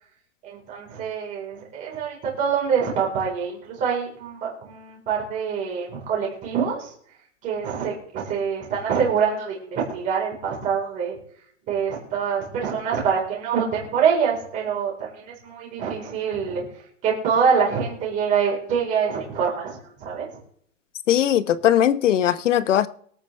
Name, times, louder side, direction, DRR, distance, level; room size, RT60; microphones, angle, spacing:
voice 1, 0.4-6.9 7.4-11.2 11.7-16.6 17.0-20.4, right 6 dB, 20° right, -3 dB, 4.4 m, -25 dB
voice 2, 21.1-22.9, left 11 dB, 65° left, 15 dB, 1.1 m, -19 dB
24.5 x 9.0 x 3.4 m, 0.63 s
hypercardioid pair, 170°, 39 cm